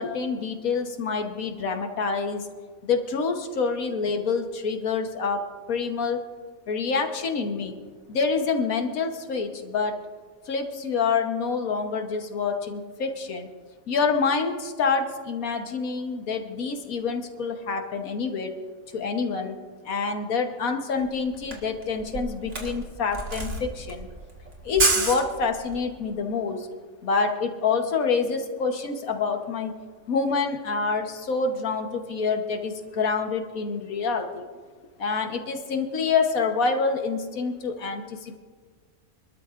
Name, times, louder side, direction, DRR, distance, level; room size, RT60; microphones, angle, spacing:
voice 1, 0.0-2.4 2.8-5.4 5.7-6.2 6.7-7.7 8.1-9.9 10.5-13.5 13.9-18.6 18.9-19.6 19.8-24.1 24.6-26.7 27.0-29.8 30.1-34.4 35.0-38.4, left 5 dB, 75° left, 5 dB, 1.5 m, -27 dB
Camera, 21.0-21.1 21.3-25.9, right 3 dB, 55° right, 2.0 m, -28 dB
24.5 x 13.0 x 2.5 m, 1.5 s
omnidirectional pair, 1.5 m